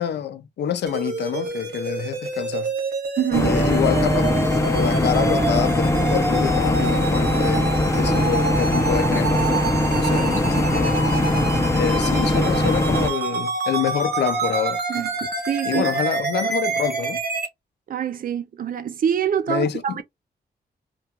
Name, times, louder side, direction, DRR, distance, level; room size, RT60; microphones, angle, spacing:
voice 1, 0.0-2.7 3.4-4.3 4.7-9.6 9.9-11.0 11.7-14.8 15.7-17.2 19.5-20.0, left 9 dB, 75° left, 0.4 m, -27 dB
sound 1, 0.9-17.5, right 4 dB, 70° right, 1.0 m, -27 dB
voice 2, 3.2-3.6 14.9-15.1 15.5-15.9 17.9-20.0, right 9 dB, 55° right, 0.4 m, -25 dB
sound 2, 3.3-13.1, left 1 dB, 15° left, 0.4 m, -21 dB
2.3 x 2.3 x 2.8 m
wide cardioid pair, 145°, 17 cm